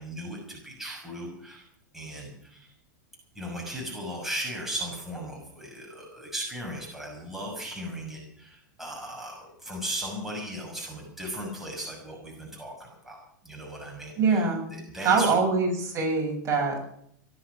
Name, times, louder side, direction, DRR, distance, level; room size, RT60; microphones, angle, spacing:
voice 1, 0.0-1.6 1.9-2.7 3.3-13.2 13.4-14.4 14.7-15.3, right 1 dB, 5° right, -2 dB, 6.2 m, -37 dB
voice 2, 14.2-14.7 15.0-17.0, right 4 dB, 30° right, 0 dB, 7.4 m, -24 dB
18.5 x 12.0 x 6.2 m, 0.70 s
hypercardioid pair, 110°, 10 cm